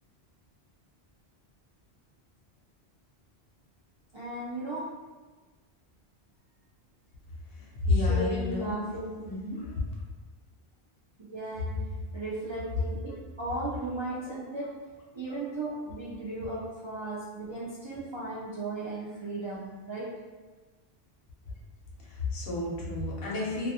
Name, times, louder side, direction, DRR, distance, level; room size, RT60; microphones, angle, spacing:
voice 1, 4.1-5.0 7.9-9.3 11.3-11.8 12.1-14.8 15.1-20.2, right 2 dB, 50° right, -8 dB, 0.3 m, -36 dB
voice 2, 7.7-8.9 9.2-9.7 22.1-23.7, left 3 dB, 65° left, -4 dB, 0.8 m, -30 dB
2.4 x 2.3 x 2.7 m, 1.3 s
omnidirectional pair, 1.1 m